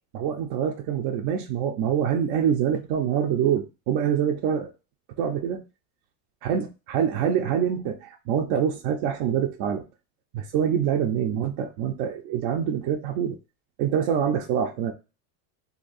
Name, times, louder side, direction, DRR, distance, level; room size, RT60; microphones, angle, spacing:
voice 1, 0.1-4.7 5.2-5.6 6.4-9.8 10.3-13.4 13.8-14.9, right 8 dB, 55° right, 2 dB, 0.6 m, -25 dB
2.9 x 2.6 x 4.0 m, 0.30 s
cardioid pair, 145°, 47 cm